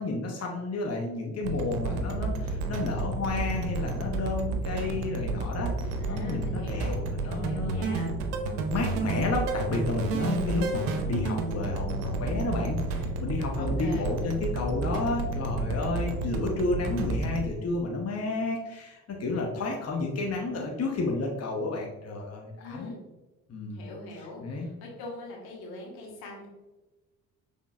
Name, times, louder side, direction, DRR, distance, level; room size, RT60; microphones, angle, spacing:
voice 1, 0.0-6.9 7.2-8.0 8.7-22.9 23.5-23.8 24.4-24.7, left 3 dB, 40° left, 0 dB, 1.0 m, -31 dB
sound 1, 1.4-17.5, right 3 dB, 80° right, 0.7 m, -31 dB
voice 2, 6.0-8.1 8.7-9.0 10.2-10.5 13.6-14.1 22.6-23.0 23.7-26.5, left 2 dB, 70° left, -2 dB, 1.4 m, -43 dB
5.9 x 3.6 x 2.4 m, 1.1 s
hypercardioid pair, 50°, 38 cm